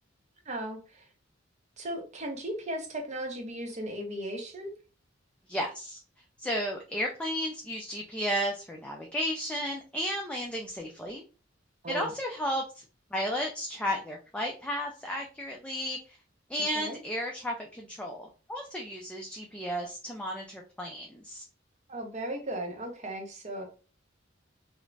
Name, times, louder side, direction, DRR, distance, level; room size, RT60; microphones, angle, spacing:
voice 1, 0.5-1.1 1.8-4.7 11.8-12.1 16.6-17.0 21.9-23.7, right 1 dB, 35° right, 2 dB, 0.7 m, -36 dB
voice 2, 5.5-6.0 6.4-11.2 11.9-12.8 13.1-16.2 16.5-21.4, equal, 5° left, 0 dB, 0.3 m, -33 dB
2.4 x 2.0 x 3.1 m, 0.35 s
head